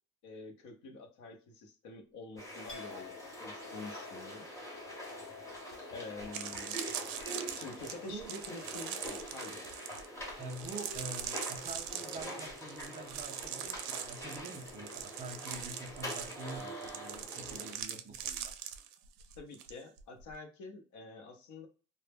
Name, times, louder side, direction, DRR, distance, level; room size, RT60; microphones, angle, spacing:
voice 1, 0.2-4.5 5.9-6.8 7.5-9.7 19.4-21.7, left 3 dB, 65° left, 0.7 m, -47 dB
sound 1, 2.4-17.7, equal, 10° left, 0.7 m, -45 dB
Chink clink, 2.7-10.4 10.7-11.4, left 7 dB, 40° left, 1.0 m, -54 dB
sound 2, 5.7-5.8 6.2-19.7 20.0-20.3, right 10 dB, 85° right, 0.5 m, -42 dB
voice 2, 10.4-18.5, right 2 dB, 25° right, 0.3 m, -46 dB
2.1 x 2.0 x 3.2 m
cardioid pair, 150°, 32 cm